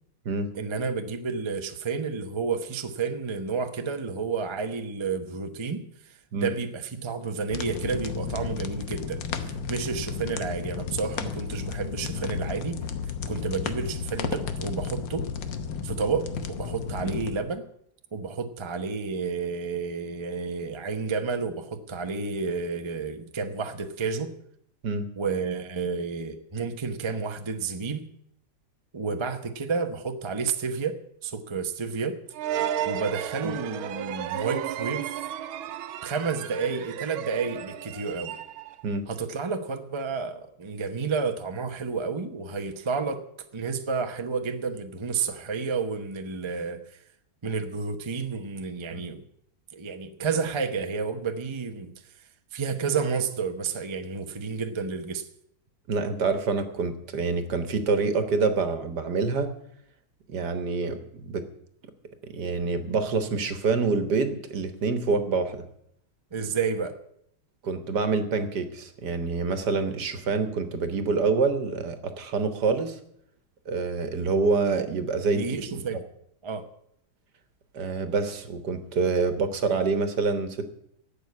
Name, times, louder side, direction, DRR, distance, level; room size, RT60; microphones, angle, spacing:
voice 1, 0.6-12.8 13.3-15.3 15.8-17.6 18.1-24.3 25.2-28.1 28.9-31.0 31.2-32.2 32.8-35.1 36.0-38.4 39.1-43.2 43.5-47.0 47.4-49.2 49.7-51.9 52.5-55.3 66.3-66.9 75.4-76.0 76.4-76.6, right 5 dB, 40° right, 7 dB, 0.4 m, -30 dB
sound 1, 7.5-17.4, left 6 dB, 65° left, 1.6 m, -33 dB
sound 2, 32.3-38.8, right 10 dB, 90° right, 1.6 m, -33 dB
voice 2, 55.9-59.6 60.3-61.4 62.2-65.6 67.6-73.0 73.6-75.8 77.7-80.7, right 4 dB, 55° right, 9 dB, 1.7 m, -26 dB
12.0 x 8.3 x 9.5 m, 0.73 s
omnidirectional pair, 2.2 m